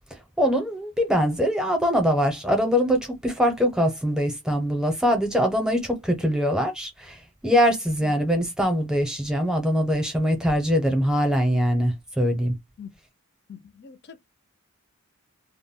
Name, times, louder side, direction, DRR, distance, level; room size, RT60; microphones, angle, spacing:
voice 1, 0.1-12.5, equal, 5° right, 0.6 m, -23 dB
voice 2, 13.5-14.2, left 7 dB, 50° left, 0.5 m, -43 dB
2.2 x 2.1 x 3.6 m
head